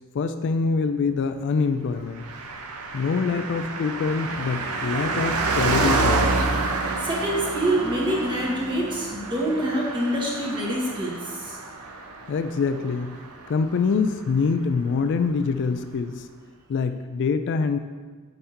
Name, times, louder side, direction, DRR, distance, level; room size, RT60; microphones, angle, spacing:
voice 1, 0.1-2.2 2.9-6.5 12.3-13.1 13.5-16.3 16.7-17.8, left 5 dB, 55° left, 9 dB, 0.3 m, -25 dB
Car passing by, 2.2-14.0 14.3-14.4, right 3 dB, 85° right, 0.6 m, -28 dB
voice 2, 7.0-11.6, right 1 dB, 20° right, -4 dB, 1.3 m, -26 dB
7.8 x 5.6 x 2.8 m, 1.4 s
head